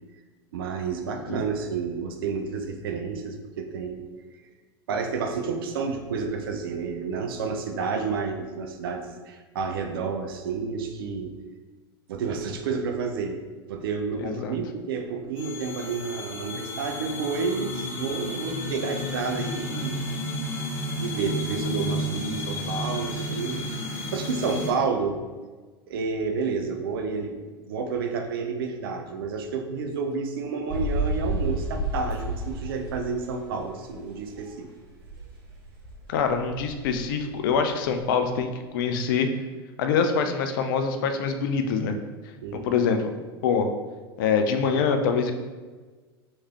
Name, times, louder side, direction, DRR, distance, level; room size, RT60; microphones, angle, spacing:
voice 1, 0.5-4.1 4.9-11.4 12.1-13.4 13.7-20.0 21.0-25.2 25.9-27.4 27.7-34.7 42.4-42.7, right 5 dB, 60° right, 6 dB, 0.5 m, -30 dB
voice 2, 14.2-14.6 36.1-39.3 39.8-42.0 42.5-43.1 43.4-43.7 44.2-45.3, left 6 dB, 55° left, 6 dB, 0.4 m, -24 dB
sound 1, 15.4-24.7, equal, 40° left, 0.8 m, -32 dB
sound 2, 30.7-34.5 34.8-38.3, right 1 dB, 35° right, 0.9 m, -31 dB
3.3 x 3.1 x 2.9 m, 1.4 s
figure-of-eight pair, 85°, 13 cm